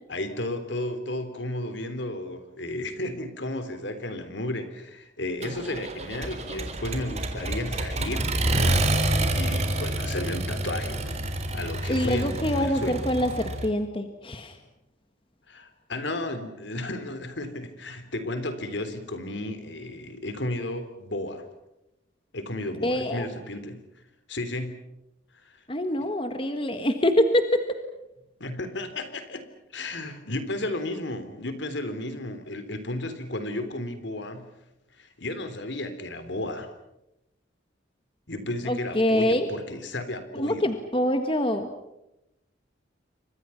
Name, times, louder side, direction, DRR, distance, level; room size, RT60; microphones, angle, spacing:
voice 1, 0.1-11.2 11.5-13.0 15.5-21.4 22.3-23.8 24.3-24.8 25.4-25.6 28.4-29.5 29.7-34.5 35.0-36.7 38.3-40.7, left 1 dB, 65° left, 10 dB, 3.6 m, -33 dB
Accelerating revving vroom, 5.4-13.7, right 1 dB, 35° right, 3.7 m, -28 dB
voice 2, 11.9-14.6 22.8-23.3 25.7-27.8 38.7-39.5 40.3-41.7, left 1 dB, 30° left, 7 dB, 1.6 m, -25 dB
29.5 x 25.5 x 5.9 m, 0.89 s
head